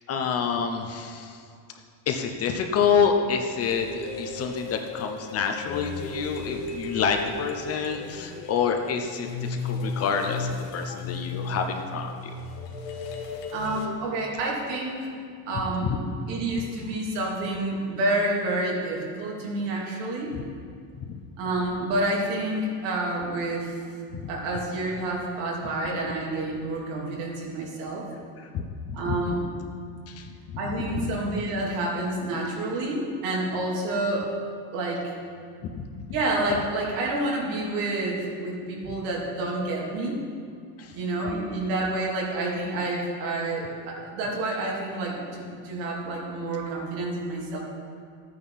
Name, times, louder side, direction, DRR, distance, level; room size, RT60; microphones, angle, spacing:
voice 1, 0.1-1.3 2.1-12.3 15.8-16.0 21.1-21.2 24.2-24.3 28.5-29.2 30.1-30.2 30.9-31.1 35.6-35.8 40.8-40.9, left 6 dB, 30° left, 4 dB, 0.7 m, -27 dB
sound 1, 3.6-13.9, left 3 dB, 80° left, 1.5 m, -35 dB
voice 2, 13.5-15.1 15.5-16.0 16.3-20.3 21.4-23.7 24.3-28.1 28.9-29.4 30.6-34.3 34.7-35.1 36.1-40.2 40.9-47.6, right 2 dB, 75° right, -3 dB, 3.0 m, -29 dB
13.5 x 9.4 x 4.1 m, 2.3 s
cardioid pair, 165°, 48 cm